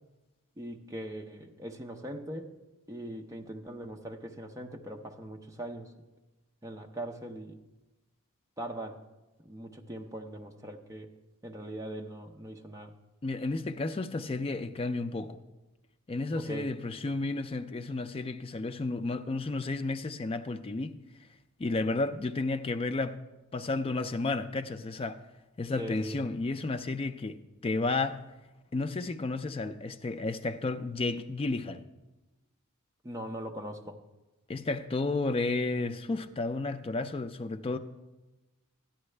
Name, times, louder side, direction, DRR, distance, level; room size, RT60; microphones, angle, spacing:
voice 1, 0.6-2.5 2.9-5.9 6.6-7.6 8.6-9.0 9.5-11.1 11.4-12.9 16.3-16.7 25.8-26.2 33.0-34.0, right 1 dB, 15° right, 0.6 m, -41 dB
voice 2, 13.2-15.4 16.1-21.0 21.6-23.2 23.5-25.2 25.6-28.2 28.7-31.8 34.5-37.8, left 3 dB, 25° left, 0.4 m, -32 dB
13.5 x 10.0 x 3.3 m
head